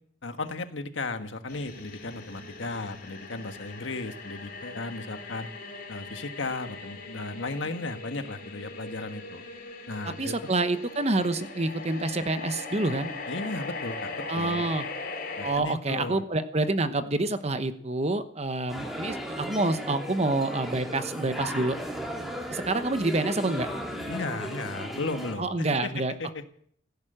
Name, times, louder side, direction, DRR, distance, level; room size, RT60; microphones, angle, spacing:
voice 1, 0.2-5.5 5.9-9.4 9.9-10.3 13.3-14.7 15.4-16.2 24.0-26.4, left 3 dB, 80° left, 8 dB, 1.6 m, -35 dB
sound 1, 1.5-15.6, left 3 dB, 50° left, 4.0 m, -40 dB
voice 2, 10.0-13.1 14.3-14.8 15.4-21.8 22.5-23.7 25.4-26.1, right 2 dB, 35° right, 10 dB, 1.1 m, -27 dB
sound 2, 18.7-25.3, equal, ahead, 2.7 m, -36 dB
16.5 x 10.5 x 7.9 m, 0.64 s
head